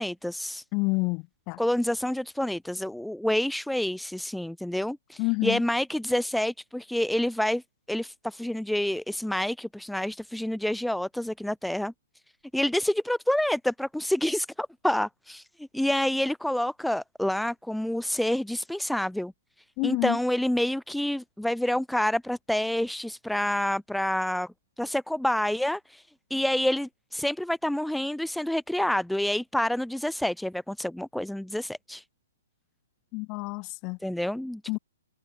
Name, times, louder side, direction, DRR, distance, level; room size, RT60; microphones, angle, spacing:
voice 1, 0.0-0.6 1.6-7.6 7.9-11.9 12.5-19.3 19.8-24.5 24.8-26.0 26.3-32.0 34.0-34.8, left 1 dB, ahead, 0.4 m, -28 dB
voice 2, 0.7-1.6 5.2-5.6 19.8-20.2 33.1-34.0 34.7-34.8, left 29 dB, 35° left, 4.4 m, -28 dB
hypercardioid pair, 135°, 0 cm